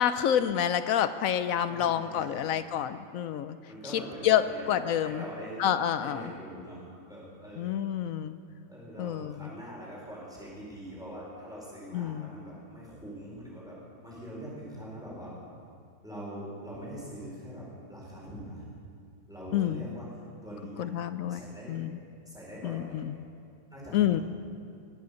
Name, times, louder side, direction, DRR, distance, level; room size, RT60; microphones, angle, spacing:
voice 1, 0.0-3.6 3.9-4.4 4.7-5.2 5.6-6.2 7.6-8.4 9.0-9.5 11.9-12.3 19.5-19.8 20.8-21.4 21.7-22.0 22.6-23.1 23.9-24.2, left 10 dB, 70° left, 12 dB, 0.8 m, -28 dB
voice 2, 1.6-2.6 3.7-5.7 6.0-6.8 7.1-7.7 8.7-13.8 14.0-15.3 16.0-18.6 19.3-20.1 20.4-20.9 21.3-21.7 22.2-23.1 23.7-24.2, equal, ahead, -6 dB, 4.7 m, -43 dB
21.0 x 7.8 x 7.0 m, 2.3 s
omnidirectional pair, 1.8 m